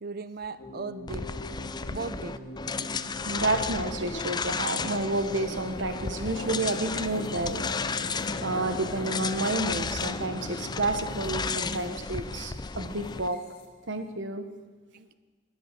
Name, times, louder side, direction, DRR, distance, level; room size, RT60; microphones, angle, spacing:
voice 1, 0.0-1.3 1.9-2.4 14.9-15.1, right 4 dB, 55° right, 14 dB, 0.6 m, -37 dB
sound 1, 0.6-14.1, left 1 dB, 55° left, 1.9 m, -44 dB
sound 2, 1.1-13.3, left 4 dB, 25° left, 0.4 m, -34 dB
sound 3, 2.7-11.4, left 2 dB, 85° left, 1.2 m, -42 dB
voice 2, 3.2-7.7 8.1-13.4 13.9-14.5, right 2 dB, 75° right, 8 dB, 1.3 m, -30 dB
21.0 x 8.0 x 6.8 m, 1.4 s
head